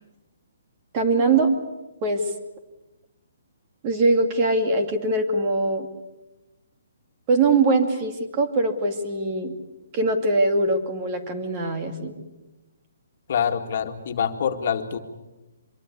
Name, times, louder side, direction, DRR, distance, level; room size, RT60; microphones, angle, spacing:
voice 1, 0.9-1.5 2.0-2.2 3.8-5.9 7.3-9.5 9.9-12.1, right 3 dB, 25° right, 6 dB, 2.5 m, -22 dB
voice 2, 13.3-15.0, left 8 dB, 50° left, 5 dB, 2.1 m, -25 dB
25.0 x 22.5 x 8.4 m, 1.0 s
hypercardioid pair, 165°, 0 cm